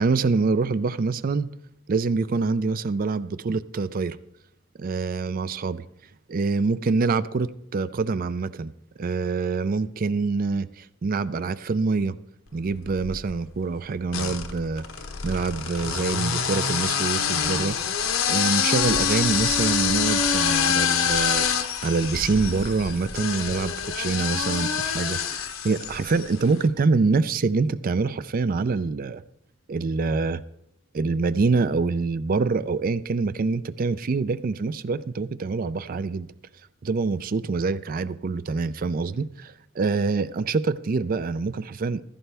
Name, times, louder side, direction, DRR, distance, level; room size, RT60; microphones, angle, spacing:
voice 1, 0.0-1.5 1.9-4.2 4.8-5.8 6.3-8.7 9.0-12.1 12.5-14.8 15.2-17.9 18.3-21.5 21.8-29.2 29.7-30.4 30.9-36.3 36.8-42.0, right 4 dB, 45° right, 0.4 m, -25 dB
sound 1, 12.7-13.4 14.1-26.4, left 7 dB, 80° left, 1.1 m, -26 dB
15.5 x 14.5 x 3.4 m
head